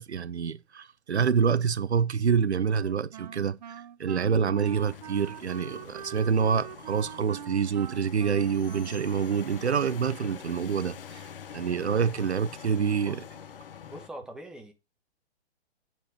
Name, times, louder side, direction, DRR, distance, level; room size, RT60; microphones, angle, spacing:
voice 1, 0.0-13.2, right 6 dB, 85° right, 0.5 m, -27 dB
Wind instrument woodwind instrument, 2.7-10.1, right 10 dB, 40° right, 0.6 m, -44 dB
sound 1, 4.6-14.1, left 8 dB, 55° left, 0.9 m, -45 dB
voice 2, 13.8-14.7, right 1 dB, ahead, 1.1 m, -42 dB
7.9 x 4.5 x 5.7 m
figure-of-eight pair, 125°, 32 cm